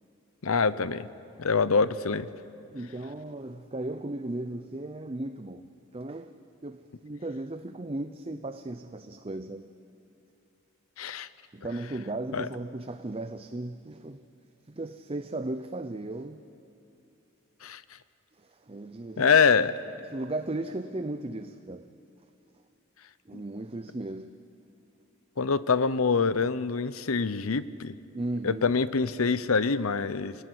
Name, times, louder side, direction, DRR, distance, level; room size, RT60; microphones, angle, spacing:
voice 1, 0.4-1.1 1.4-2.3 11.0-11.3 12.3-12.5 17.6-17.8 19.2-19.7 25.4-27.9 28.4-30.4, left 5 dB, 85° left, 15 dB, 0.8 m, -25 dB
voice 2, 2.7-5.7 5.9-9.7 11.5-14.2 14.7-16.5 18.4-19.3 20.1-21.9 23.3-24.4 28.1-28.8, right 2 dB, 25° right, 9 dB, 0.6 m, -36 dB
27.5 x 18.0 x 9.7 m, 2.7 s
head